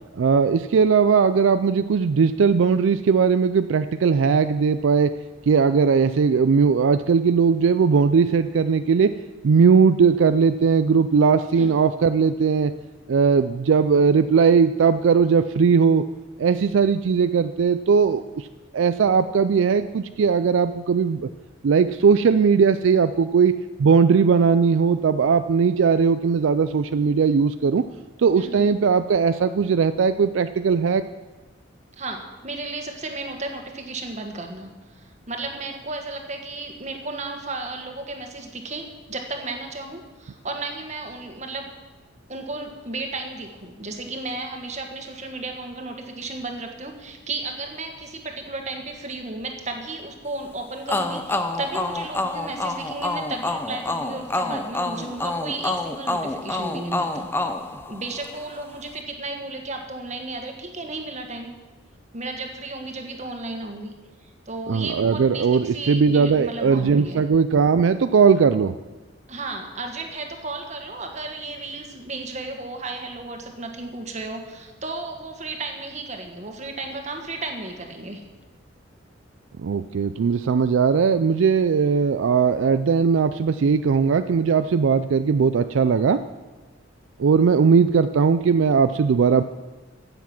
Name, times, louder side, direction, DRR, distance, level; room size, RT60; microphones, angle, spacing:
voice 1, 0.1-5.1 5.5-9.1 9.4-12.7 13.1-16.0 16.4-18.5 18.7-21.3 21.6-23.5 23.8-27.8 28.2-31.0 64.7-68.7 79.6-86.2 87.2-89.4, right 5 dB, 75° right, 11 dB, 0.4 m, -19 dB
voice 2, 28.4-28.7 32.0-41.7 42.3-57.3 57.9-61.5 62.1-63.9 64.5-67.2 69.3-78.2, right 2 dB, 35° right, 3 dB, 1.6 m, -34 dB
sound 1, 50.9-58.5, left 2 dB, 10° left, 0.6 m, -28 dB
15.5 x 7.2 x 6.0 m, 1.2 s
head